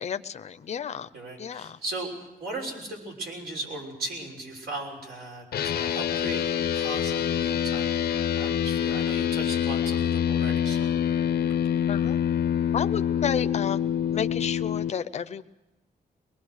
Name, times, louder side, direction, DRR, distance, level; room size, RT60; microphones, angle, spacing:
voice 1, 0.0-1.1 1.4-1.8 11.9-12.2 12.7-13.8 14.1-15.4, left 8 dB, 45° left, 11 dB, 0.6 m, -31 dB
voice 2, 1.1-10.9, right 2 dB, 80° right, 0 dB, 6.3 m, -37 dB
sound 1, 5.5-14.9, left 9 dB, 90° left, 0.8 m, -26 dB
24.0 x 20.5 x 6.5 m, 1.0 s
wide cardioid pair, 170°, 16 cm